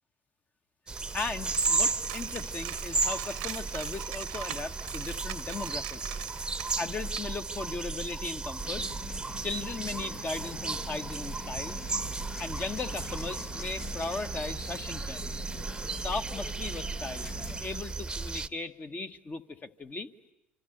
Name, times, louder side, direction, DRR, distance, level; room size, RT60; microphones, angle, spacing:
sound 1, 0.9-18.5, right 3 dB, 15° right, 0.9 m, -34 dB
Coin (dropping), 1.0-7.2, right 18 dB, 75° right, 0.9 m, -43 dB
voice 1, 1.1-6.2 6.8-8.9 9.4-11.8 12.4-15.3 15.7-20.1, left 3 dB, 30° left, 7 dB, 1.2 m, -37 dB
sound 2, 8.6-17.6, left 3 dB, 75° left, 5.2 m, -44 dB
27.0 x 25.5 x 7.9 m, 0.88 s
hypercardioid pair, 65°, 5 cm